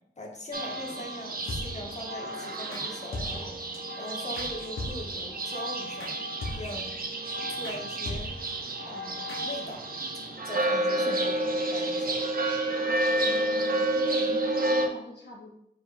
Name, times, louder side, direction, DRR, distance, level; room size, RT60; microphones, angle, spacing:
voice 1, 0.2-3.5 4.0-6.9 7.5-8.3 8.9-12.2, left 1 dB, 35° left, 0 dB, 1.3 m, -41 dB
sound 1, 0.5-14.9, right 1 dB, 45° right, 0.7 m, -30 dB
sound 2, 1.5-2.0 2.7-2.9 3.1-3.8 4.4-5.3 6.0-6.1 6.4-6.9 7.2-7.3 7.6-7.8 8.0-8.6 9.3-9.4, left 2 dB, 85° left, 0.9 m, -38 dB
voice 2, 13.2-15.6, left 3 dB, 55° left, -3 dB, 0.8 m, -44 dB
4.9 x 4.2 x 2.6 m, 0.76 s
cardioid pair, 50°, 20 cm